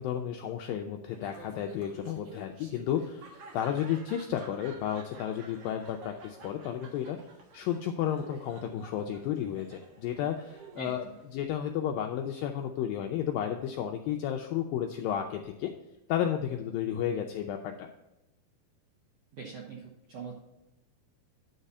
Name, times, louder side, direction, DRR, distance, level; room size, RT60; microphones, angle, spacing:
voice 1, 0.0-7.2 7.5-11.1 11.3-15.7 16.1-17.9, left 10 dB, 90° left, 3 dB, 2.0 m, -32 dB
Laughter, 1.1-11.5, right 4 dB, 60° right, 2.4 m, -52 dB
voice 2, 10.8-11.2 19.3-20.3, right 5 dB, 85° right, -3 dB, 1.4 m, -42 dB
10.0 x 4.1 x 5.4 m, 0.89 s
omnidirectional pair, 4.7 m